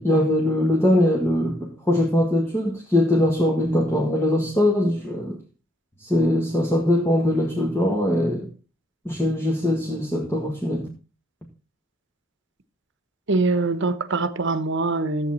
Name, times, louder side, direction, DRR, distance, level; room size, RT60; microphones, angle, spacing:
voice 1, 0.0-5.4 6.0-8.5 9.1-10.9, left 1 dB, 10° left, 1.8 m, -21 dB
voice 2, 13.3-15.3, right 3 dB, 60° right, 1.0 m, -23 dB
13.5 x 8.2 x 4.3 m
head